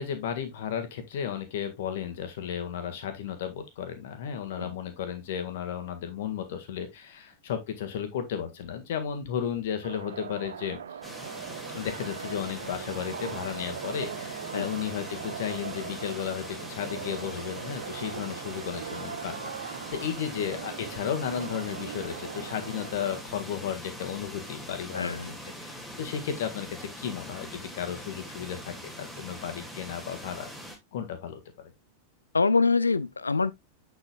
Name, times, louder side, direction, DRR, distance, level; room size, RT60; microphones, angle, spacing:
voice 1, 0.0-10.8 11.7-25.2 25.6-30.5 30.9-31.7, left 8 dB, 55° left, 1.7 m, -34 dB
sound 1, 9.8-23.2, right 8 dB, 65° right, 0.5 m, -40 dB
sound 2, 11.0-30.8, equal, ahead, 2.4 m, -43 dB
voice 2, 24.9-25.3 32.3-33.5, left 4 dB, 80° left, 0.4 m, -25 dB
7.7 x 7.2 x 2.3 m
figure-of-eight pair, 90°, 0 cm